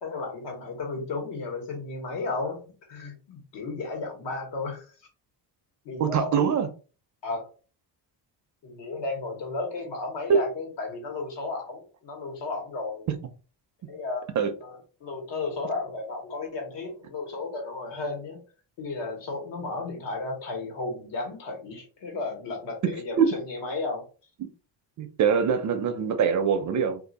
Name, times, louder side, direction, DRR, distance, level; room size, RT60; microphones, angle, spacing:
voice 1, 0.0-2.6 2.9-4.8 5.8-6.3 7.2-7.5 8.6-13.1 13.9-14.3 14.6-18.4 18.8-24.1, left 3 dB, 75° left, 1.4 m, -34 dB
voice 2, 6.0-6.7 10.3-10.4 14.4-14.5 22.8-22.9 23.2-23.4 25.0-27.0, right 7 dB, 45° right, 0.4 m, -23 dB
2.6 x 2.4 x 3.9 m
cardioid pair, 175°, 44 cm